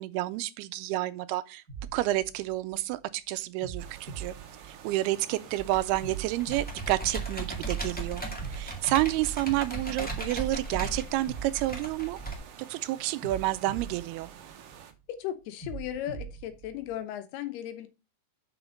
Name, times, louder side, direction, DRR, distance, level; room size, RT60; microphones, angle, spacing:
voice 1, 0.0-1.6 1.9-4.3 4.7-8.3 8.5-12.2 12.7-14.3, right 16 dB, 90° right, 2.6 m, -29 dB
sound 1, 1.7-3.0 3.6-5.3 6.0-7.8 8.4-10.2 10.8-12.6 13.2-14.9 15.6-17.0, right 6 dB, 35° right, 1.6 m, -43 dB
sound 2, 3.8-14.9, right 8 dB, 70° right, 2.6 m, -49 dB
Computer keyboard, 5.6-12.3, right 3 dB, 15° left, 0.3 m, -37 dB
voice 2, 15.1-17.9, left 11 dB, 85° left, 3.0 m, -36 dB
7.0 x 6.4 x 5.2 m
omnidirectional pair, 4.5 m